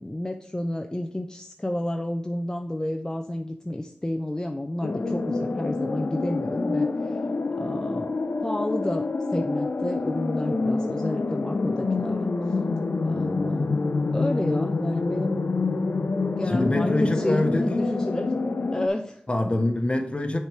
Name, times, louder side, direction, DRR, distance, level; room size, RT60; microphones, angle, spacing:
voice 1, 0.0-7.2 7.6-8.1 8.4-12.3 13.0-15.5 16.4-18.3 18.7-19.2, left 1 dB, 20° left, 0.5 m, -30 dB
sound 1, 4.8-18.9, left 3 dB, 75° left, 0.6 m, -27 dB
voice 2, 16.3-17.7 19.3-20.4, left 1 dB, 35° left, 1.0 m, -25 dB
6.7 x 4.4 x 4.9 m
cardioid pair, 45°, 3 cm